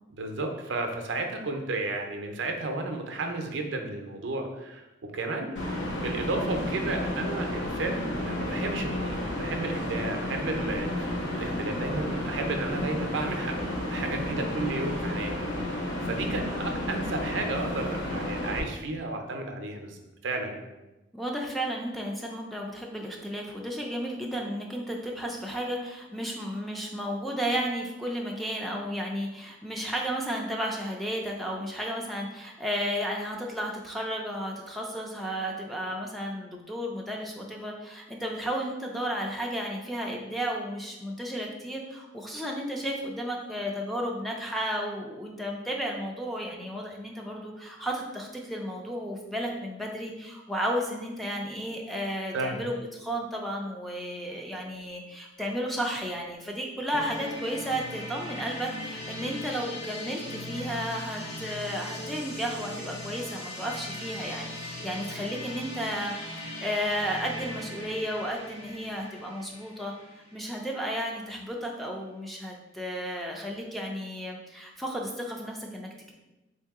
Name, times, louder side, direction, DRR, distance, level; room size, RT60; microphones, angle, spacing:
voice 1, 0.1-4.9 5.1-5.6 5.9-15.3 16.0-20.7 52.3-52.6, right 2 dB, 80° right, 4 dB, 0.5 m, -33 dB
sound 1, 5.5-18.6, left 1 dB, 75° left, 0.9 m, -32 dB
voice 2, 21.1-66.1 66.4-69.9 70.3-76.1, equal, ahead, -1 dB, 0.4 m, -33 dB
sound 2, 56.9-70.7, left 1 dB, 35° left, 0.8 m, -39 dB
3.8 x 2.7 x 3.5 m, 1.0 s
head